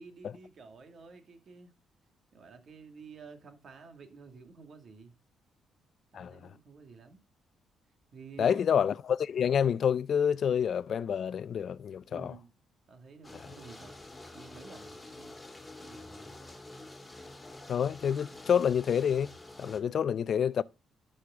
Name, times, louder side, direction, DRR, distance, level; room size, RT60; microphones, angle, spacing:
voice 1, 0.0-1.7 2.3-5.2 6.1-7.2 8.1-8.7 12.1-12.5 12.9-13.9 14.3-15.3 15.8-16.4, right 4 dB, 55° right, 2.1 m, -51 dB
voice 2, 8.4-12.3 13.3-13.4 17.7-19.3 19.6-20.6, left 8 dB, 55° left, 0.4 m, -28 dB
sound 1, 13.2-19.8, left 2 dB, 15° left, 2.8 m, -48 dB
11.5 x 6.4 x 3.7 m
cardioid pair, 90°, 0 cm